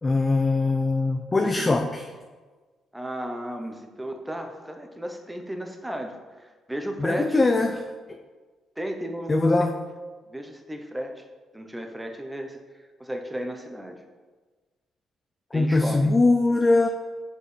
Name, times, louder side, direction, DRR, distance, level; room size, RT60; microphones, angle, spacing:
voice 1, 0.0-2.0 7.0-8.2 9.3-9.7 15.5-16.9, left 3 dB, 25° left, 4 dB, 0.4 m, -22 dB
voice 2, 1.3-1.8 2.9-7.4 8.8-9.5 10.3-11.2 11.5-12.6 13.0-14.0 15.5-16.0, equal, 10° right, 5 dB, 0.7 m, -34 dB
6.0 x 5.2 x 3.3 m, 1.4 s
cardioid pair, 90°, 0 cm